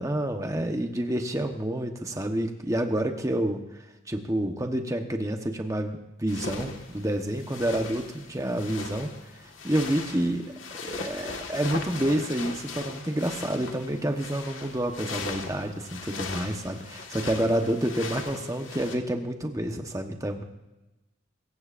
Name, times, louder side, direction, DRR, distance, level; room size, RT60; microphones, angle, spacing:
voice 1, 0.0-3.6 4.1-9.1 9.6-10.4 10.7-20.4, right 1 dB, 15° right, 4 dB, 1.1 m, -28 dB
sound 1, 6.3-19.0, left 4 dB, 85° left, 1.7 m, -39 dB
24.5 x 15.0 x 2.6 m, 1.0 s
head